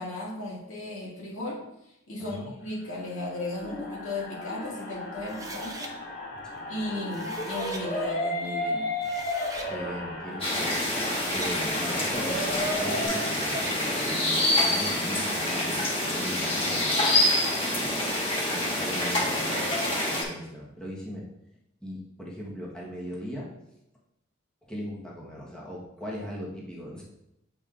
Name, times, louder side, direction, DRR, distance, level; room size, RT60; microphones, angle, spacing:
voice 1, 0.0-1.7 2.1-6.0 6.7-8.9, left 2 dB, 90° left, -4 dB, 2.1 m, -35 dB
voice 2, 2.2-2.5 6.5-6.8 9.1-10.8 11.3-17.1 17.7-18.0 18.5-21.2 21.8-23.5 24.6-27.0, equal, 5° left, -5 dB, 1.3 m, -39 dB
sound 1, 3.2-13.1, left 1 dB, 45° left, 2.2 m, -34 dB
sound 2, 5.3-5.9 6.9-7.8 8.7-8.8 9.0-9.7 10.8-11.6 13.0-13.8, right 2 dB, 15° right, 0.7 m, -40 dB
sound 3, 10.4-20.2, left 1 dB, 25° left, 1.4 m, -27 dB
8.7 x 5.2 x 2.5 m, 0.84 s
head